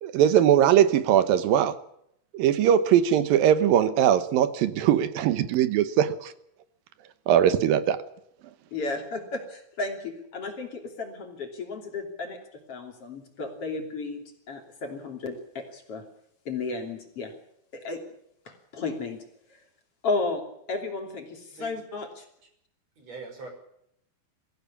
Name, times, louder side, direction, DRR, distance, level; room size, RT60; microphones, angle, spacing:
voice 1, 0.0-1.8 2.3-6.3 7.3-8.0, right 10 dB, 75° right, 13 dB, 2.8 m, -21 dB
voice 2, 8.7-12.4 12.7-16.0 16.5-17.3 17.7-18.0 18.5-19.6 20.0-22.3, left 3 dB, 40° left, 4 dB, 3.7 m, -33 dB
voice 3, 23.0-23.5, right 4 dB, 45° right, 5 dB, 6.5 m, -42 dB
22.5 x 15.5 x 8.5 m, 0.74 s
omnidirectional pair, 4.2 m